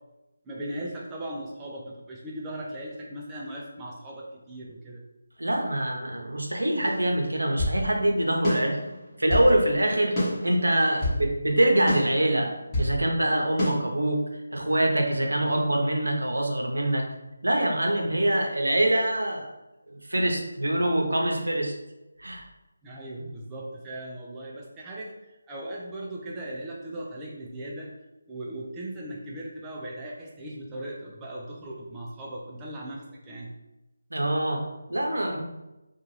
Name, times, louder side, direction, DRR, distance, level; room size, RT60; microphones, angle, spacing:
voice 1, 0.5-5.0 22.8-27.9 28.3-33.5, right 1 dB, 15° right, -4 dB, 0.4 m, -38 dB
voice 2, 5.4-8.8 9.2-10.2 10.4-12.5 12.8-14.2 14.5-17.0 17.4-19.5 19.9-21.7 22.2-22.4 34.1-35.4, right 1 dB, 85° right, 2 dB, 0.7 m, -24 dB
sound 1, 6.8-7.8 8.4-9.5 10.2-11.2 11.9-12.9 13.6-13.7, left 1 dB, 15° left, 0.9 m, -28 dB
2.5 x 2.3 x 3.1 m, 0.98 s
figure-of-eight pair, 165°, 0 cm